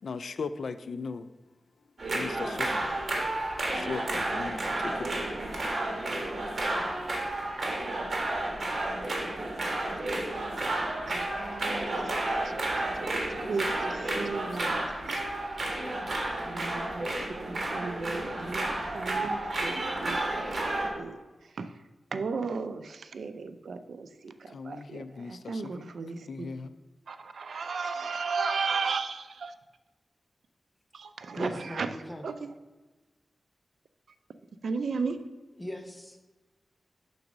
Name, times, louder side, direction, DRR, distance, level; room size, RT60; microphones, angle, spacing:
voice 1, 0.0-1.3 2.1-2.8 3.7-5.1 9.3-9.5 24.5-25.9 26.2-26.7, left 4 dB, 85° left, 0.3 m, -38 dB
sound 1, 2.0-20.9, right 2 dB, 55° right, 1.5 m, -31 dB
voice 2, 11.1-12.0 12.8-15.2 16.5-21.2 21.6-21.7 22.1-26.5 27.1-29.5 30.9-31.9 32.2-32.5 34.6-35.3, right 4 dB, 85° right, 0.4 m, -35 dB
voice 3, 31.3-32.3 35.6-36.2, left 1 dB, 15° left, 0.9 m, -39 dB
6.2 x 3.9 x 5.9 m
wide cardioid pair, 90°, 0 cm